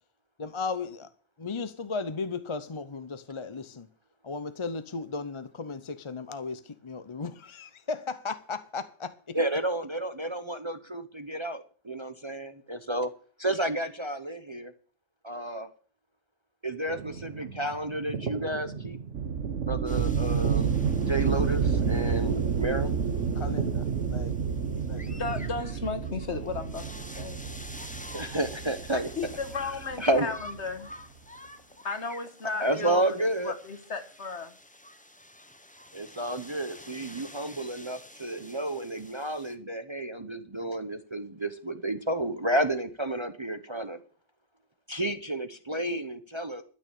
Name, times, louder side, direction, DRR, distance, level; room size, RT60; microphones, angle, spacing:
voice 1, 0.4-1.1 1.4-3.9 4.2-9.4 23.3-24.4 24.9-25.2, left 4 dB, 30° left, 0.6 m, -36 dB
voice 2, 9.3-13.1 13.4-14.7 15.2-15.7 16.6-19.0 19.6-20.7 21.0-22.9 28.1-29.1 30.0-30.3 32.6-33.5 35.9-44.0 44.9-46.6, right 1 dB, 25° right, 0.8 m, -31 dB
sound 1, 16.9-25.5, right 5 dB, 55° right, 1.3 m, -37 dB
sound 2, 19.1-30.6, right 6 dB, 70° right, 1.3 m, -30 dB
sound 3, 19.9-39.6, left 1 dB, 5° left, 0.9 m, -49 dB
voice 3, 25.1-27.5 28.9-31.0 31.8-34.6, left 4 dB, 60° left, 1.8 m, -35 dB
12.5 x 6.4 x 8.3 m
omnidirectional pair, 1.3 m